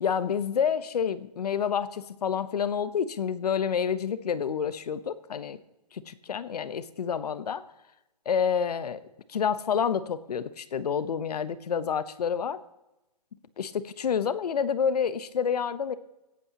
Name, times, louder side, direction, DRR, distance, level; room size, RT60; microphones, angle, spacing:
voice 1, 0.0-5.6 5.9-7.6 8.3-9.0 9.3-12.6 13.6-15.9, left 7 dB, 70° left, 14 dB, 1.0 m, -28 dB
24.0 x 8.7 x 2.9 m, 0.98 s
hypercardioid pair, 155°, 21 cm